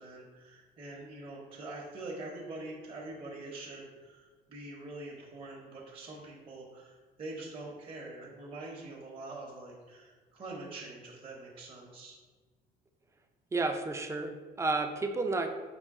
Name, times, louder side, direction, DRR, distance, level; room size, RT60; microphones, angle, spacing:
voice 1, 0.0-12.2, right 2 dB, 35° right, -4 dB, 0.7 m, -44 dB
voice 2, 13.5-15.5, right 3 dB, 15° right, 6 dB, 0.4 m, -31 dB
5.5 x 2.2 x 3.5 m, 1.4 s
cardioid pair, 110°, 17 cm